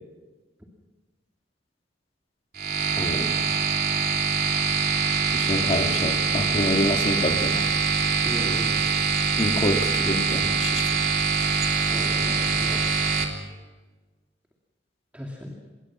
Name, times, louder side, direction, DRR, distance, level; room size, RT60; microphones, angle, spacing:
sound 1, 2.5-13.2, right 5 dB, 55° right, 3.3 m, -24 dB
voice 1, 3.0-3.4 5.3-7.7 9.4-11.0, left 1 dB, 30° left, 4 dB, 2.0 m, -27 dB
voice 2, 8.2-8.8 11.8-12.8 15.1-15.5, equal, 10° right, -1 dB, 2.7 m, -36 dB
25.5 x 22.0 x 6.1 m, 1.3 s
head